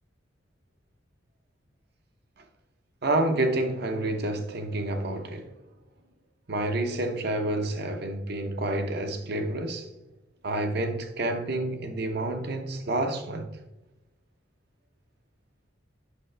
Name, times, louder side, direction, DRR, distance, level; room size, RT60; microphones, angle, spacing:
voice 1, 3.0-5.5 6.5-9.9 10.4-13.5, right 2 dB, 60° right, 0.8 m, -29 dB
8.2 x 5.9 x 3.3 m
head